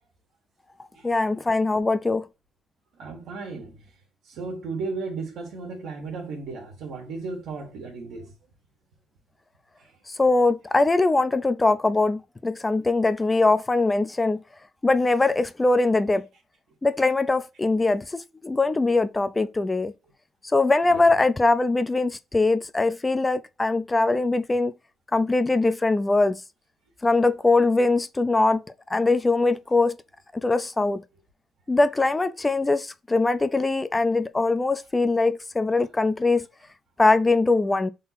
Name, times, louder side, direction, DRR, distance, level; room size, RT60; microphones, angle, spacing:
voice 1, 1.0-2.2 10.1-14.4 14.8-16.3 16.8-18.1 18.4-19.9 20.5-24.7 25.1-26.4 27.0-28.6 28.9-30.0 30.4-31.0 31.7-36.4 37.0-37.9, left 3 dB, 20° left, 0.5 m, -22 dB
voice 2, 3.0-3.8 4.3-8.3 20.9-21.0, right 4 dB, 85° right, 1.5 m, -34 dB
3.8 x 2.8 x 4.1 m
cardioid pair, 90°, 0 cm